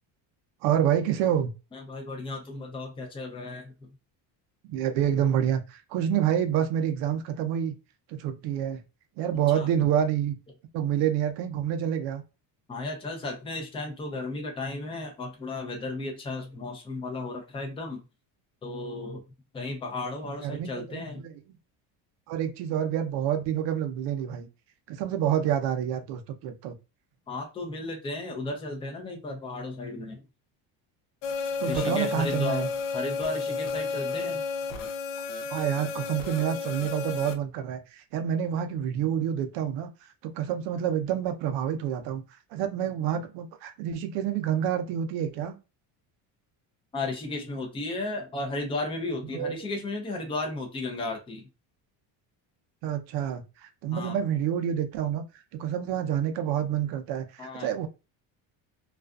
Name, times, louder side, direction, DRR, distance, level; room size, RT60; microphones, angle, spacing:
voice 1, 0.6-1.5 4.6-7.7 8.1-8.8 9.2-10.3 10.7-12.2 20.4-21.6 22.3-24.5 24.9-26.7 31.6-32.7 35.5-42.2 42.5-45.6 49.3-49.5 52.8-55.2 55.5-57.9, right 9 dB, 70° right, 0.6 m, -28 dB
voice 2, 1.7-3.7 9.5-9.7 12.7-18.0 18.6-19.2 19.5-21.2 27.3-30.2 31.6-34.4 46.9-51.4 53.9-54.2 57.4-57.7, left 2 dB, 15° left, 0.5 m, -34 dB
sound 1, 31.2-37.3, left 4 dB, 80° left, 0.6 m, -32 dB
2.4 x 2.3 x 2.3 m
cardioid pair, 145°, 44 cm